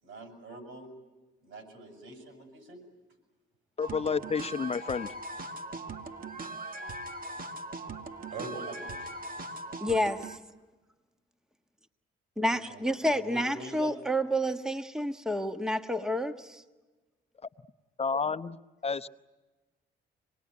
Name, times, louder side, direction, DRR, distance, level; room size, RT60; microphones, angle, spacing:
voice 1, 0.0-0.9 1.4-2.8 8.3-9.6 12.5-12.8 13.1-14.0, right 3 dB, 80° right, 5 dB, 7.4 m, -44 dB
voice 2, 3.8-5.1 18.0-18.6 18.8-19.1, left 5 dB, 30° left, 11 dB, 0.8 m, -30 dB
sound 1, 3.8-10.4, right 2 dB, 45° right, 1.9 m, -40 dB
voice 3, 9.8-10.4 12.4-16.6, equal, 5° right, 8 dB, 1.3 m, -29 dB
27.0 x 20.0 x 9.5 m, 1.2 s
cardioid pair, 90°, 20 cm